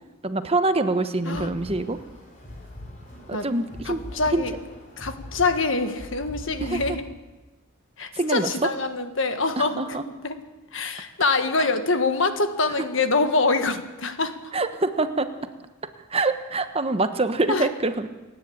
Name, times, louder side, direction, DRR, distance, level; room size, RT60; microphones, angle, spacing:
voice 1, 0.2-2.0 3.3-4.0 4.3-4.4 6.6-7.0 8.1-8.5 9.6-10.0 11.6-11.7 14.5-15.3 16.1-18.1, right 2 dB, 30° right, 9 dB, 1.0 m, -25 dB
sound 1, 1.3-6.9, left 1 dB, 40° left, 4.5 m, -41 dB
voice 2, 3.8-4.5 5.0-7.1 8.0-10.0 10.2-10.4 10.7-14.4 17.5-17.7, left 3 dB, 65° left, 8 dB, 1.6 m, -25 dB
28.5 x 10.5 x 8.7 m, 1.2 s
head